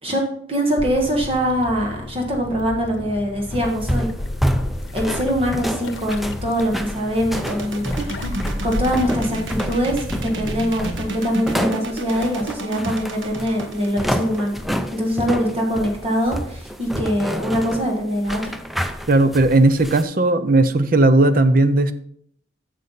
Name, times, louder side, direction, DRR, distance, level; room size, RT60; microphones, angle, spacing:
voice 1, 0.0-4.1 4.9-8.3 8.6-14.6 14.9-18.5, equal, 30° right, 1 dB, 1.4 m, -23 dB
sound 1, 0.8-11.1, left 2 dB, 80° left, 0.8 m, -33 dB
sound 2, 3.5-20.0, equal, ahead, 0.5 m, -29 dB
sound 3, 7.3-15.1, right 2 dB, 85° right, 1.2 m, -31 dB
voice 2, 19.1-21.9, right 2 dB, 50° right, 11 dB, 0.6 m, -16 dB
9.4 x 6.6 x 4.1 m, 0.65 s
head